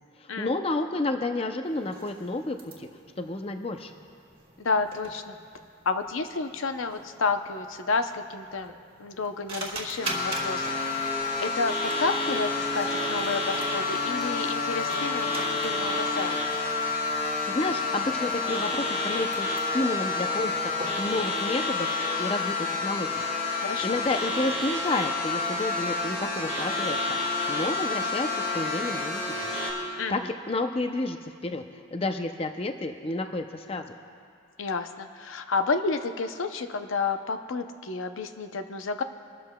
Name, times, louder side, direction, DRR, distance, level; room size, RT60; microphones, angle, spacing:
voice 1, 0.2-2.9 3.2-3.9 17.1-20.7 21.0-21.9 22.2-23.2 23.8-29.6 29.8-31.6 31.9-33.9, left 2 dB, 30° left, 6 dB, 0.5 m, -31 dB
sound 1, 1.6-21.2, right 2 dB, 25° right, 1.6 m, -44 dB
voice 2, 4.6-5.4 5.9-8.7 9.0-11.1 11.4-15.3 15.6-16.4 23.6-24.0 30.0-30.3 34.6-39.0, left 4 dB, 70° left, 8 dB, 0.6 m, -30 dB
sound 2, 10.0-29.7, left 3 dB, 45° left, 3.6 m, -29 dB
24.5 x 13.0 x 2.2 m, 2.3 s
head